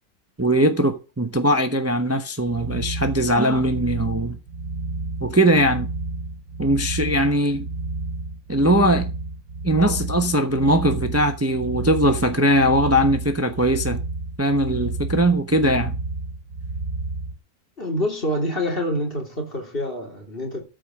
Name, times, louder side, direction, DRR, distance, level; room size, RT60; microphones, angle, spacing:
voice 1, 0.4-4.4 5.2-5.9 6.6-7.7 8.5-9.1 9.6-14.0 14.4-16.0, right 1 dB, 10° right, 0.8 m, -20 dB
sound 1, 2.5-17.4, right 3 dB, 65° right, 1.3 m, -31 dB
voice 2, 17.8-20.6, left 1 dB, 40° left, 3.5 m, -26 dB
13.5 x 5.2 x 6.4 m
omnidirectional pair, 1.5 m